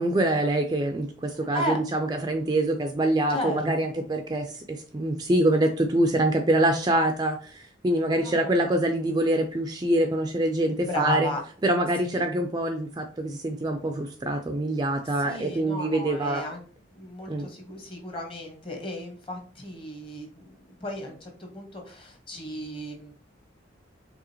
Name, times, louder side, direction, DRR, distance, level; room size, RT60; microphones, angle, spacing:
voice 1, 0.0-11.3 11.6-16.4 17.3-17.4, right 1 dB, 20° right, 5 dB, 0.4 m, -25 dB
voice 2, 1.3-1.8 3.3-3.6 8.2-8.6 10.8-11.4 12.0-12.3 15.0-16.6 16.9-23.1, left 1 dB, 25° left, 3 dB, 1.1 m, -35 dB
4.9 x 3.4 x 2.8 m, 0.43 s
head